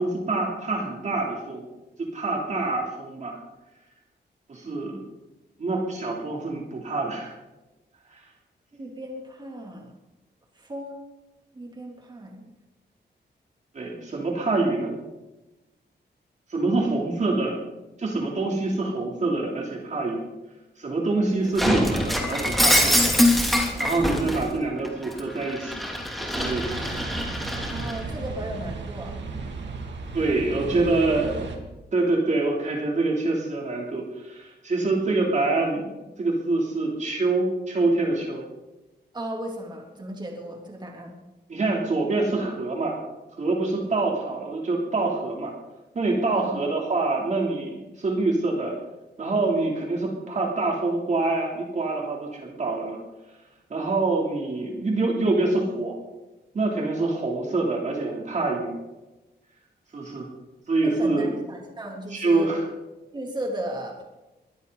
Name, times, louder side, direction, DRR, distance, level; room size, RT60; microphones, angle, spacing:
voice 1, 0.0-1.6 2.0-3.4 4.5-5.0 5.6-7.3 8.1-8.2 13.7-14.9 16.5-17.6 18.0-20.2 20.8-23.0 23.8-25.8 26.2-26.6 30.1-31.6 31.9-38.5 41.5-43.0 43.4-45.5 45.9-48.7 49.2-53.0 53.7-55.9 56.5-58.7 59.9-60.3 60.7-61.3 62.1-62.6, right 3 dB, 40° right, -1 dB, 3.2 m, -25 dB
voice 2, 8.7-9.9 10.5-11.0 11.5-12.5 27.7-29.2 30.6-30.7 39.1-41.2 46.3-46.5 60.8-62.5 63.1-64.0, right 1 dB, 25° right, 0 dB, 3.3 m, -35 dB
Shatter, 21.6-24.4 24.8-28.0, left 1 dB, ahead, 3.1 m, -24 dB
sound 1, 26.3-31.6, right 4 dB, 85° right, 2.7 m, -35 dB
22.5 x 15.5 x 4.1 m, 1.1 s
wide cardioid pair, 155°, 18 cm